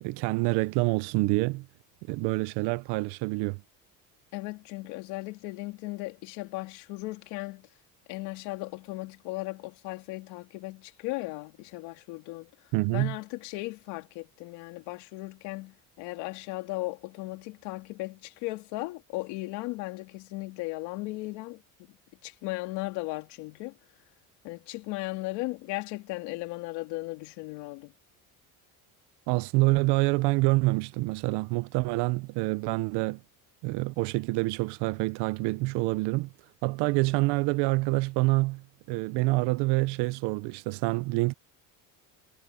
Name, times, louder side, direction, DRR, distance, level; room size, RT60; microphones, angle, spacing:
voice 1, 0.0-1.7 2.1-3.6 12.7-13.2 29.3-33.2 33.6-36.3 36.6-41.3, right 23 dB, 80° right, 0.7 m, -27 dB
voice 2, 4.3-7.7 8.1-12.5 12.9-21.6 22.2-23.8 24.4-27.9, left 21 dB, 90° left, 3.1 m, -36 dB
cardioid pair, 125°, 40 cm